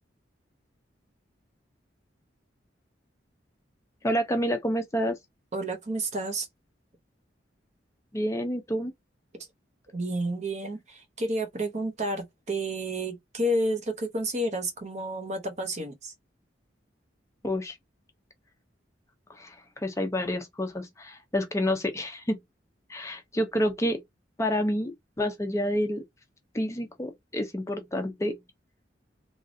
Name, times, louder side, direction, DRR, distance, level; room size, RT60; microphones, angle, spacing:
voice 1, 4.0-5.2 8.1-8.9 17.4-17.8 19.3-22.4 22.9-24.0 24.4-26.0 26.5-28.4, equal, 15° left, 0.5 m, -29 dB
voice 2, 5.5-6.5 9.3-9.5 9.9-16.1, right 1 dB, 40° right, 0.8 m, -30 dB
3.1 x 2.4 x 2.6 m
head